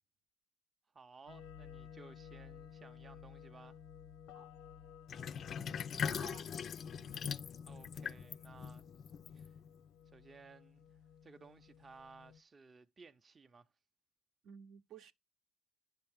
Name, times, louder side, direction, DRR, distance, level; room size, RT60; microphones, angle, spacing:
voice 1, 0.9-3.8 7.7-8.9 9.3-9.6 10.1-13.7, right 4 dB, 30° right, 0.6 m, -58 dB
sound 1, 1.3-12.4, left 8 dB, 85° left, 0.7 m, -56 dB
Sink (filling or washing), 5.1-9.8, left 7 dB, 50° left, 0.4 m, -41 dB
voice 2, 5.5-6.5 7.0-7.2 14.4-15.1, right 7 dB, 65° right, 0.7 m, -55 dB
9.7 x 5.7 x 3.6 m
supercardioid pair, 90°, 0 cm